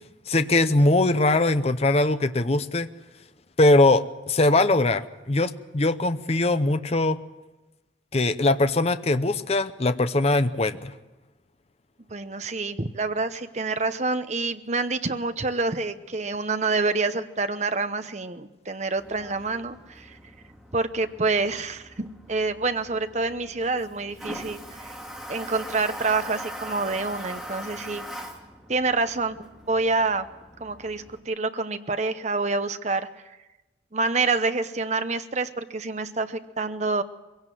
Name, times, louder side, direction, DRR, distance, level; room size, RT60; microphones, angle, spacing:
voice 1, 0.3-2.9 3.6-7.2 8.1-10.9, left 2 dB, 35° left, 11 dB, 0.7 m, -21 dB
voice 2, 12.1-20.2 20.7-24.9 25.3-28.0 28.7-29.4 29.7-30.3 30.6-33.1 33.9-37.0, right 3 dB, 35° right, 10 dB, 0.9 m, -27 dB
Toilet flush, 19.0-31.2, equal, ahead, 2.3 m, -41 dB
22.0 x 17.0 x 7.7 m, 1.1 s
head